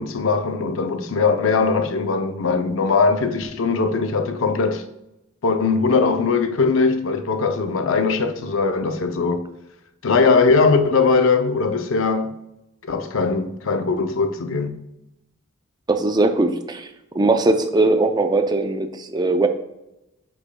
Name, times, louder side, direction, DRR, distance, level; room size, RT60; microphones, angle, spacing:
voice 1, 0.0-4.8 5.4-9.5 10.0-12.3 12.8-14.8, left 4 dB, 65° left, 0.5 m, -20 dB
voice 2, 15.9-16.9 17.1-19.5, right 2 dB, 20° right, 0.4 m, -19 dB
8.0 x 6.1 x 2.2 m
head